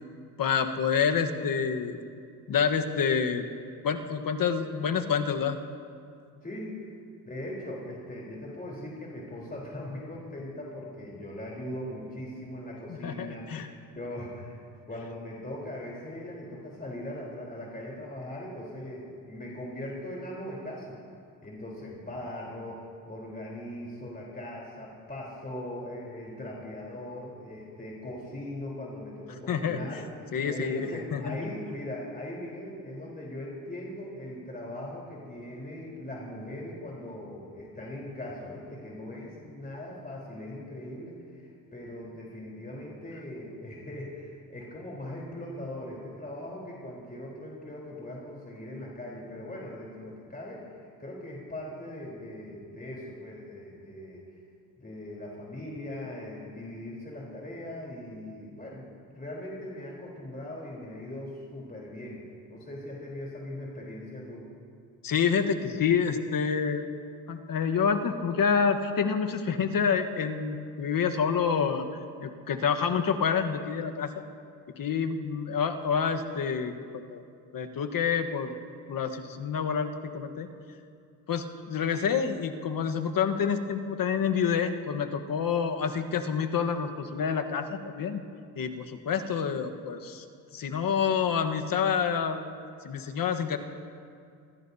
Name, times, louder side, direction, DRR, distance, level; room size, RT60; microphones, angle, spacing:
voice 1, 0.4-2.0 2.5-3.4 3.8-5.6 12.9-13.7 29.5-29.8 30.3-31.5 65.0-66.9 67.3-71.9 72.2-74.1 74.8-77.2 77.5-78.5 78.9-80.5 81.3-88.2 88.5-90.2 90.5-92.4 92.8-93.6, left 6 dB, 50° left, 6 dB, 1.3 m, -28 dB
voice 2, 6.4-6.7 7.2-21.0 21.4-54.2 54.8-62.2 62.5-64.5, left 1 dB, 20° left, -4 dB, 3.8 m, -40 dB
25.0 x 15.0 x 2.8 m, 2.4 s
supercardioid pair, 70°, 44 cm